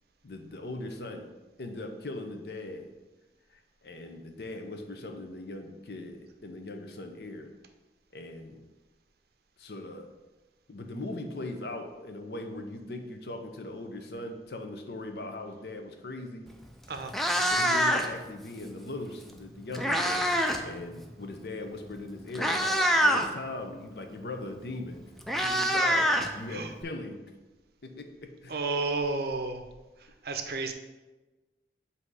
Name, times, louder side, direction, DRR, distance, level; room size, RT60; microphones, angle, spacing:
voice 1, 0.2-1.3 1.6-2.9 3.5-7.5 8.1-8.6 9.6-10.1 10.7-16.5 17.5-20.3 20.6-25.0 25.4-27.2 27.8-28.6, left 2 dB, 60° left, 5 dB, 0.7 m, -39 dB
Meow, 16.5-16.6 17.0-18.3 19.3-20.7 20.9-21.2 21.9-22.0 22.3-23.3 24.6-24.7 24.9-26.8, equal, ahead, 0.4 m, -25 dB
voice 2, 28.5-29.6 30.0-30.7, right 3 dB, 60° right, 6 dB, 0.6 m, -32 dB
7.6 x 2.8 x 4.7 m, 1.1 s
head